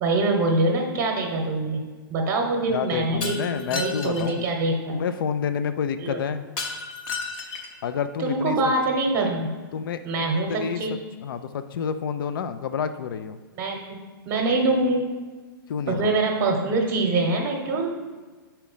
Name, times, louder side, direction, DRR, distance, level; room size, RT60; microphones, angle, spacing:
voice 1, 0.0-1.8 2.1-5.0 6.0-6.2 8.2-9.5 10.0-10.9 13.6-14.0 14.3-15.1 15.9-17.9, right 2 dB, 30° right, 0 dB, 1.0 m, -24 dB
voice 2, 2.7-4.5 4.9-6.4 7.8-8.6 9.7-10.0 10.5-13.4 15.7-16.2, left 7 dB, 65° left, 11 dB, 0.4 m, -29 dB
Shatter, 3.2-4.4 6.6-7.8, left 4 dB, 30° left, 0.8 m, -33 dB
4.8 x 4.4 x 5.5 m, 1.4 s
hypercardioid pair, 135°, 12 cm